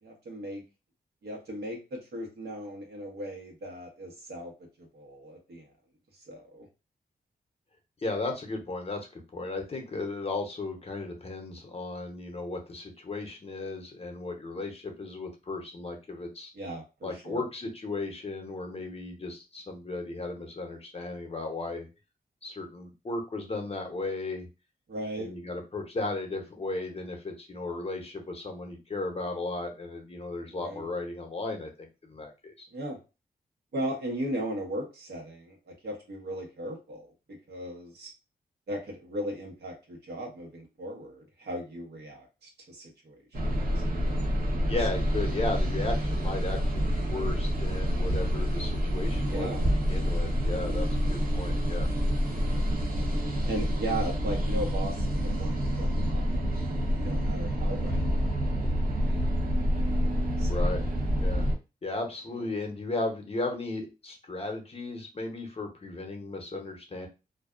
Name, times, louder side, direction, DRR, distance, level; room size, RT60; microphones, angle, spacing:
voice 1, 0.0-0.6 1.2-4.5 4.9-5.7 6.3-6.7 16.5-17.4 24.9-25.3 30.5-30.9 32.7-33.0 33.7-38.1 38.7-43.2 43.7-43.8 44.5-44.7 49.3-49.7 53.4-59.2 59.7-60.6 62.3-62.4, right 1 dB, 85° right, 0 dB, 1.0 m, -37 dB
voice 2, 8.0-16.5 17.0-21.9 22.4-24.5 25.2-32.7 44.7-51.9 54.5-54.7 60.5-60.8 61.2-61.5 61.8-67.1, left 2 dB, 35° left, 3 dB, 0.7 m, -35 dB
sound 1, 43.3-61.5, equal, 60° right, 0.8 m, -27 dB
2.5 x 2.2 x 2.3 m, 0.28 s
wide cardioid pair, 100°, 17 cm